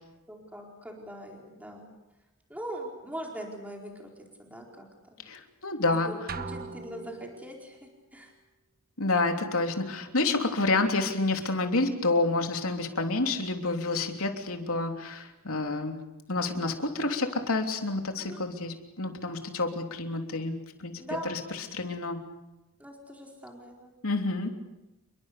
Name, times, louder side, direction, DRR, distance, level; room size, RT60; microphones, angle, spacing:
voice 1, 0.3-1.9 2.5-4.1 4.5-4.9 5.8-8.3 15.5-15.9 16.6-16.9 18.2-18.5 21.0-21.5 22.8-23.9, right 1 dB, 5° right, 0 dB, 4.5 m, -41 dB
voice 2, 5.3-6.1 9.0-16.0 16.3-20.9 21.2-22.2 24.0-24.5, left 3 dB, 75° left, 4 dB, 3.3 m, -29 dB
sound 1, 6.3-7.7, right 4 dB, 40° right, 1.1 m, -39 dB
29.5 x 23.0 x 6.8 m, 0.97 s
head